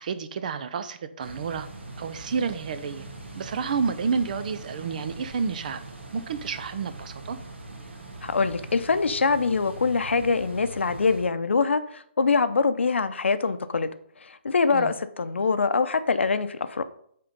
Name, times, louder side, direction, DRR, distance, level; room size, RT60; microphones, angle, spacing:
voice 1, 0.0-1.7 2.0-3.1 3.3-5.8 6.1-7.4 14.7-14.9, right 5 dB, 45° right, 11 dB, 0.6 m, -30 dB
sound 1, 1.2-11.2, right 2 dB, 75° right, 1.8 m, -42 dB
voice 2, 8.2-13.9 14.2-16.8, left 4 dB, 85° left, 11 dB, 0.7 m, -24 dB
8.8 x 3.8 x 5.3 m, 0.66 s
hypercardioid pair, 160°, 6 cm